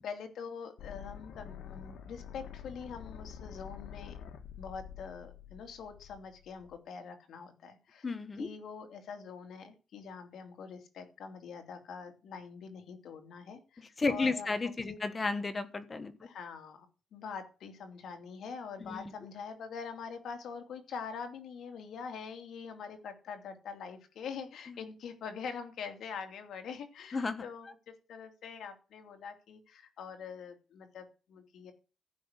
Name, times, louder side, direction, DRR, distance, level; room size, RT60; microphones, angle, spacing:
voice 1, 0.0-4.2 4.6-8.1 8.4-14.5 14.8-15.0 16.2-16.9 17.1-27.7 28.1-31.7, left 6 dB, 65° left, 5 dB, 2.8 m, -44 dB
sound 1, 0.8-6.8, left 8 dB, 80° left, 1.9 m, -48 dB
voice 2, 8.0-8.5 14.0-16.1 18.8-19.1 27.1-27.4, left 3 dB, 20° left, 10 dB, 1.3 m, -33 dB
14.5 x 6.2 x 8.2 m, 0.33 s
cardioid pair, 165°, 0 cm